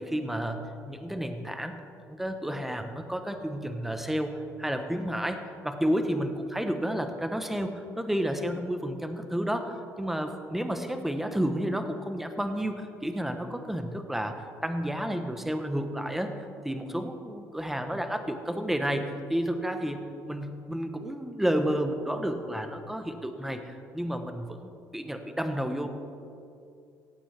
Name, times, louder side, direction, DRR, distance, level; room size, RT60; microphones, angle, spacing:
voice 1, 0.0-1.8 2.1-16.3 16.6-25.9, equal, 5° right, 7 dB, 0.9 m, -31 dB
17.5 x 8.6 x 3.4 m, 2.5 s
cardioid pair, 95°, 7 cm